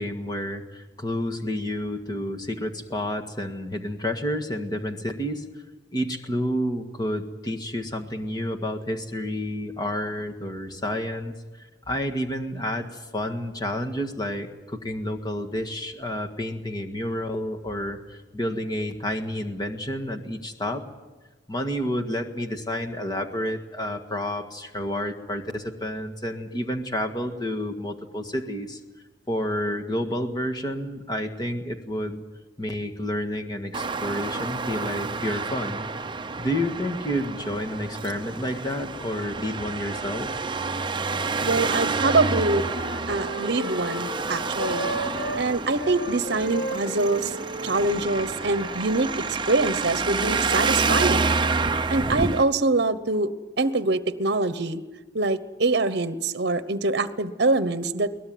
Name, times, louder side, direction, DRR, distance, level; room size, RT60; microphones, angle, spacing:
voice 1, 0.0-5.5 5.9-11.4 11.9-20.8 21.5-28.8 29.3-32.2 32.6-35.9 36.4-40.3, left 1 dB, 20° left, 4 dB, 1.8 m, -30 dB
Traffic noise roadway noise, 33.7-52.4, right 4 dB, 25° right, 0.7 m, -28 dB
voice 2, 41.4-42.6 43.1-44.9 45.3-47.3 47.6-49.1 49.5-51.3 51.9-53.3 53.6-54.8 55.1-58.1, right 3 dB, 60° right, 13 dB, 1.0 m, -24 dB
Wind instrument woodwind instrument, 42.1-45.4 45.8-50.0, equal, 80° left, 3.1 m, -36 dB
22.5 x 19.0 x 9.4 m, 1.2 s
head